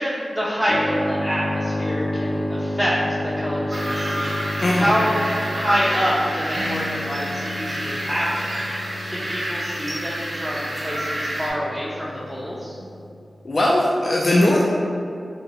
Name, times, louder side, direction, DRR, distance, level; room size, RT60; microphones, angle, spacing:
voice 1, 0.0-3.0 3.2-5.2 5.5-12.8, equal, 5° left, -9 dB, 0.5 m, -26 dB
Keyboard (musical), 0.7-13.1, left 1 dB, 80° left, 0.7 m, -30 dB
sound 1, 3.7-11.5, right 1 dB, 65° right, 0.8 m, -29 dB
Bass guitar, 6.6-12.8, left 5 dB, 85° right, 0.4 m, -41 dB
voice 2, 13.4-14.6, left 1 dB, 55° left, -4 dB, 0.3 m, -18 dB
2.7 x 2.2 x 4.1 m, 2.5 s
cardioid pair, 55°, 0 cm